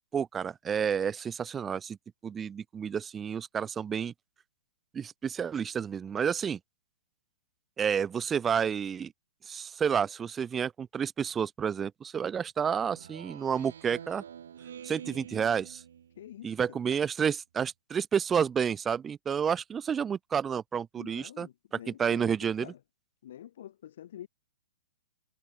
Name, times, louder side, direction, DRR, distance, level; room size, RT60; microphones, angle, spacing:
voice 1, 0.1-2.0 2.2-4.1 4.9-6.6 7.8-9.1 9.5-14.2 14.8-15.8 16.4-21.5 21.9-22.7, right 7 dB, 15° right, 0.9 m, -30 dB
Speech synthesizer, 12.9-16.4, right 9 dB, 65° right, 0.9 m, -47 dB
voice 2, 16.2-16.8 20.9-22.8 23.2-24.3, left 11 dB, 60° left, 1.4 m, -47 dB
hypercardioid pair, 120°, 0 cm